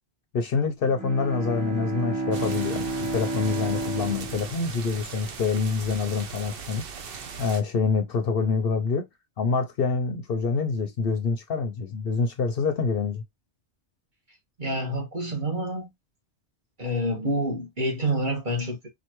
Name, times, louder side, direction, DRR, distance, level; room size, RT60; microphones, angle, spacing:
voice 1, 0.3-6.8 7.4-9.0 9.4-13.2, left 5 dB, 60° left, 0.8 m, -26 dB
Bowed string instrument, 0.9-5.7, right 2 dB, 15° right, 1.0 m, -32 dB
sound 1, 2.3-7.6, right 6 dB, 60° right, 0.8 m, -39 dB
voice 2, 14.6-15.9 16.8-18.9, right 1 dB, 45° right, 1.6 m, -28 dB
4.4 x 2.6 x 3.0 m
omnidirectional pair, 1.2 m